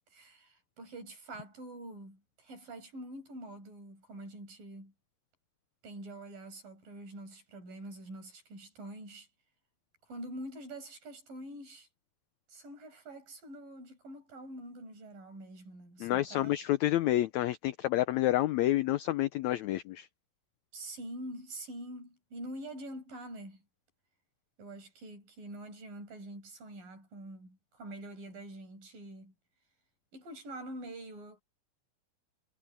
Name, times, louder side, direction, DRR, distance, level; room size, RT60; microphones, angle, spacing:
voice 1, 0.1-4.9 5.8-9.3 10.1-11.9 12.5-16.5 18.7-18.8 20.7-23.6 24.6-29.3 30.1-31.4, right 1 dB, 75° right, 9.3 m, -45 dB
voice 2, 16.0-20.1, left 14 dB, 90° left, 1.6 m, -29 dB
omnidirectional pair, 4.0 m